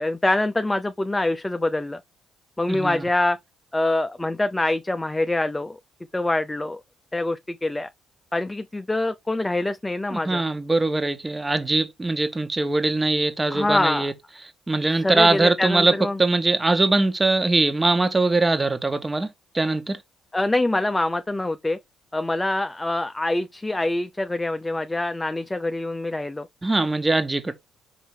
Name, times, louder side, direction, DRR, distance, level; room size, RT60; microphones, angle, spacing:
voice 1, 0.0-2.0 2.6-3.4 3.7-5.8 6.1-6.8 7.1-7.9 8.3-10.4 13.5-14.1 15.0-16.2 20.3-21.8 22.1-26.5, left 2 dB, 15° left, 0.7 m, -25 dB
voice 2, 2.7-3.0 10.1-14.1 14.7-15.9 16.2-19.3 19.5-20.0 26.6-27.5, right 2 dB, 20° right, 1.6 m, -22 dB
5.9 x 5.4 x 3.4 m
hypercardioid pair, 45°, 0 cm